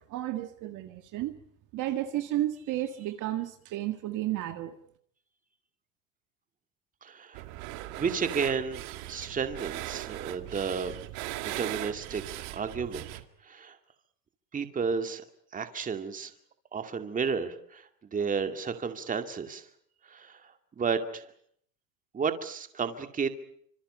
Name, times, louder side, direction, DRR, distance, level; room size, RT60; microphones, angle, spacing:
voice 1, 0.0-1.3 1.7-4.7, right 14 dB, 35° right, 7 dB, 1.8 m, -32 dB
voice 2, 7.0-7.5 8.0-11.0 11.4-13.1 13.4-13.8 14.5-15.2 15.5-16.3 16.7-19.7 20.1-21.3 22.1-23.3, right 6 dB, 15° right, 7 dB, 2.2 m, -32 dB
sound 1, 7.3-13.2, right 16 dB, 55° right, 2.2 m, -39 dB
28.0 x 26.0 x 5.6 m, 0.65 s
supercardioid pair, 145°, 50 cm